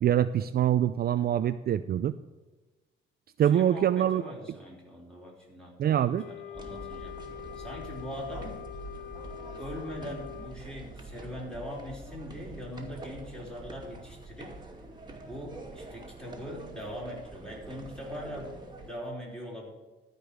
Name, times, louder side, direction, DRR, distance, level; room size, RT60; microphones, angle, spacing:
voice 1, 0.0-2.2 3.4-4.2 5.8-6.2, right 10 dB, 50° right, 12 dB, 0.4 m, -24 dB
voice 2, 3.4-7.1 7.6-8.6 9.6-14.5 15.2-19.7, equal, 5° left, -3 dB, 4.5 m, -41 dB
Wind instrument woodwind instrument, 6.1-10.6, left 11 dB, 55° left, 0.5 m, -44 dB
sound 1, 6.5-18.9, right 2 dB, 20° right, 2.4 m, -45 dB
13.0 x 5.2 x 7.7 m, 1.2 s
cardioid pair, 90°, 20 cm